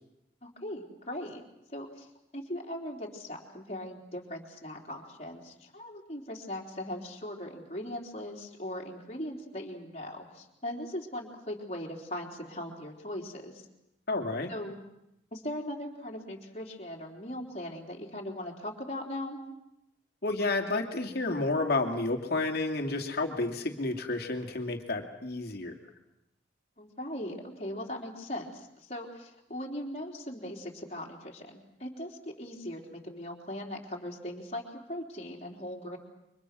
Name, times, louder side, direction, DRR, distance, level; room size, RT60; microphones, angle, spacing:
voice 1, 0.4-1.4 1.7-2.1 2.3-13.6 14.5-14.8 15.3-19.4 26.8-36.0, left 1 dB, 35° left, -1 dB, 3.8 m, -39 dB
voice 2, 14.1-14.5 20.2-25.7, left 2 dB, 55° left, 3 dB, 2.6 m, -30 dB
29.0 x 25.0 x 6.3 m, 0.86 s
head